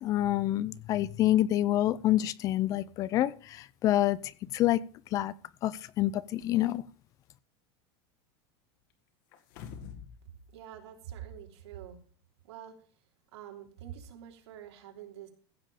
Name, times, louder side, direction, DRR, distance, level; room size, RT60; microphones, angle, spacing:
voice 1, 0.0-4.2 4.5-4.8 5.1-5.3 5.6-6.8, left 14 dB, 25° left, 20 dB, 0.4 m, -27 dB
sound 1, 9.3-10.2 10.5-10.6, left 7 dB, 50° left, 2.0 m, -44 dB
voice 2, 10.5-12.0 12.5-12.7 13.3-15.3, right 10 dB, 90° right, 2 dB, 3.3 m, -46 dB
15.5 x 7.5 x 4.9 m, 0.43 s
supercardioid pair, 175°, 14 cm